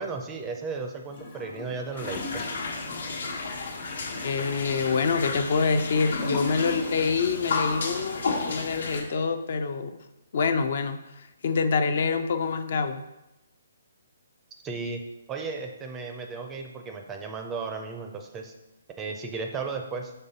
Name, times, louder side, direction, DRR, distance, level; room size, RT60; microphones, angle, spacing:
voice 1, 0.0-2.4 14.6-15.0 15.3-18.5 19.0-20.1, right 4 dB, 10° right, 4 dB, 0.4 m, -35 dB
Gurgling / Toilet flush, 1.1-7.2 7.4-7.5, left 2 dB, 25° left, 0.9 m, -38 dB
sound 1, 2.0-9.0, left 3 dB, 75° left, 1.3 m, -33 dB
voice 2, 4.2-9.9 10.3-13.0, left 5 dB, 50° left, 9 dB, 0.5 m, -26 dB
5.5 x 4.1 x 5.2 m, 0.95 s
hypercardioid pair, 170°, 0 cm